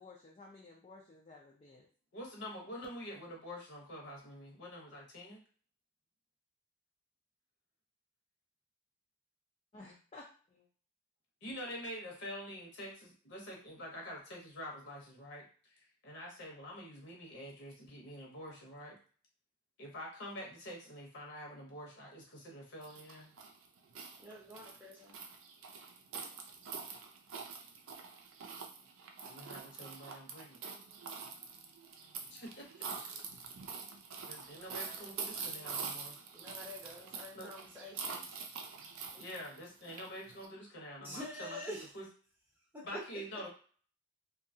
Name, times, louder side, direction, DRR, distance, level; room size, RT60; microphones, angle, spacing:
voice 1, 0.0-1.9 9.7-10.7, left 3 dB, 30° left, -2 dB, 0.4 m, -55 dB
voice 2, 2.1-5.4 11.4-19.0 19.8-23.3 29.2-30.6 32.3-32.8 34.3-36.2 37.3-37.5 39.1-42.1 42.8-43.5, equal, 55° left, -1 dB, 0.9 m, -46 dB
sound 1, 22.8-40.5, right 5 dB, 80° right, 0.5 m, -45 dB
voice 3, 24.2-25.2 34.5-35.1 35.4-35.9 36.3-38.4 41.0-41.9 42.7-43.0, left 1 dB, 10° right, -4 dB, 0.6 m, -47 dB
2.7 x 2.3 x 2.7 m, 0.42 s
head